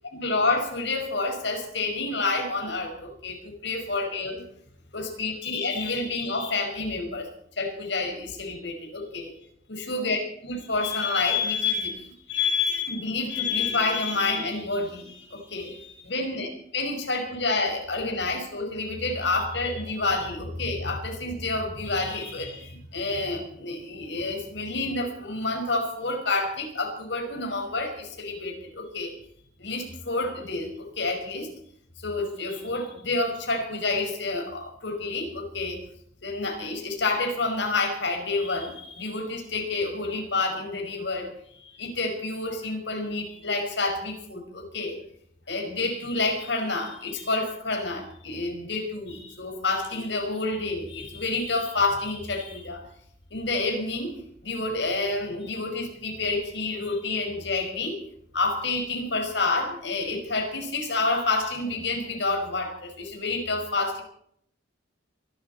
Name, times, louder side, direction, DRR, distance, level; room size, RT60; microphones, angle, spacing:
voice 1, 0.1-4.4 4.9-7.3 7.6-9.3 9.7-29.1 29.6-31.5 32.0-35.8 36.2-45.0 45.5-52.8 53.3-58.0 58.3-64.0, left 3 dB, 60° left, 2 dB, 5.4 m, -29 dB
25.5 x 12.5 x 4.3 m, 0.69 s
head